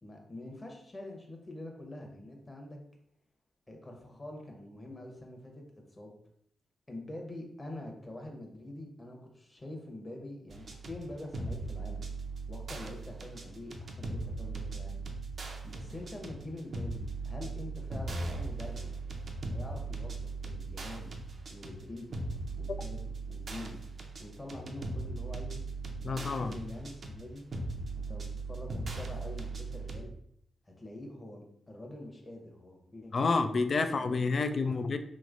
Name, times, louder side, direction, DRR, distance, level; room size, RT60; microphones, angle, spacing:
voice 1, 0.0-2.8 3.7-6.1 6.9-12.1 12.5-15.0 15.6-18.9 19.5-21.1 21.5-22.2 22.6-23.0 23.3-23.8 24.2-25.6 26.0-27.4 28.0-30.1 30.6-33.7 34.0-34.2 34.7-34.8, left 1 dB, 30° left, 1 dB, 1.0 m, -45 dB
sound 1, 10.5-30.0, right 3 dB, 60° right, 0.6 m, -39 dB
voice 2, 26.0-26.5 33.1-35.0, left 4 dB, 55° left, 9 dB, 0.3 m, -29 dB
3.1 x 3.1 x 2.5 m, 0.71 s
supercardioid pair, 45°, 0 cm